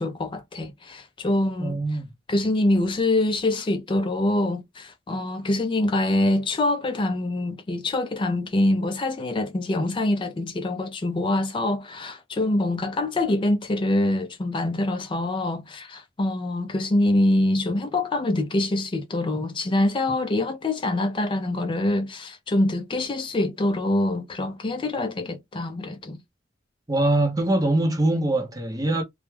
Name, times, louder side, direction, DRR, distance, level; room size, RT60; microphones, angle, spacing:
voice 1, 0.0-1.8 2.3-26.2, left 1 dB, 25° left, 0.4 m, -25 dB
voice 2, 1.6-2.1 26.9-29.0, right 2 dB, 20° right, 0.6 m, -23 dB
2.2 x 2.1 x 3.1 m
head